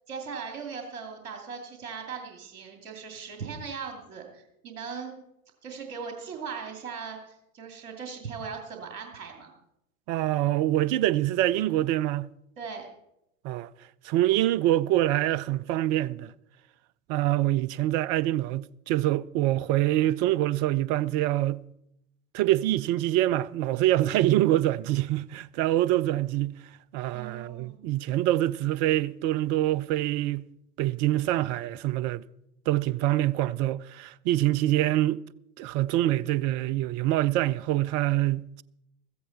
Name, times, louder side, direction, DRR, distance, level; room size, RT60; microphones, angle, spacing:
voice 1, 0.1-5.2 5.6-9.5 12.6-12.9 27.1-27.8, right 6 dB, 65° right, 2.7 m, -39 dB
voice 2, 10.1-12.3 13.4-13.7 14.0-16.3 17.1-21.6 22.3-26.5 26.9-30.5 30.8-32.2 32.7-35.2 35.6-38.6, right 14 dB, 35° right, 0.5 m, -25 dB
15.5 x 14.5 x 4.2 m
figure-of-eight pair, 80°, 44 cm